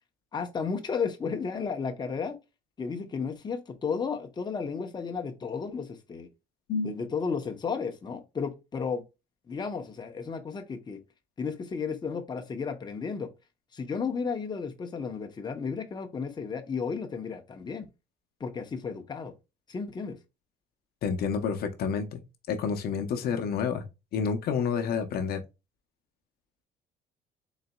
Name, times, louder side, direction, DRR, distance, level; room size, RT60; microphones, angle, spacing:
voice 1, 0.3-2.4 2.8-6.3 6.8-9.0 9.5-11.0 11.4-13.3 13.7-17.9 18.4-19.3 19.7-20.2, left 5 dB, 25° left, 0.8 m, -33 dB
voice 2, 21.0-22.2 22.5-23.9 24.1-25.4, left 6 dB, 65° left, 0.7 m, -29 dB
4.0 x 3.9 x 2.2 m
cardioid pair, 110°, 17 cm